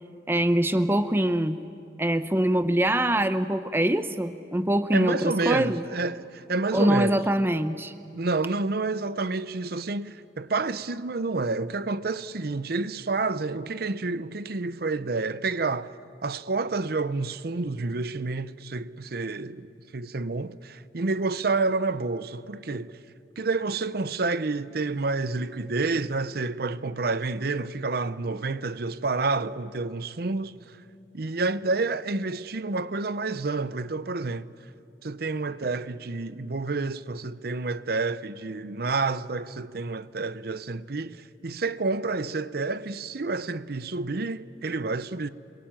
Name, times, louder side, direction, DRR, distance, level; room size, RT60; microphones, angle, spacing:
voice 1, 0.3-1.6 2.0-5.8 6.7-7.9, right 1 dB, 10° right, 0.7 m, -24 dB
voice 2, 4.9-7.3 8.1-15.9 16.2-19.7 19.9-23.0 23.4-30.6 31.1-34.5 35.0-45.3, right 3 dB, 55° right, 0.7 m, -29 dB
29.0 x 22.5 x 9.0 m
head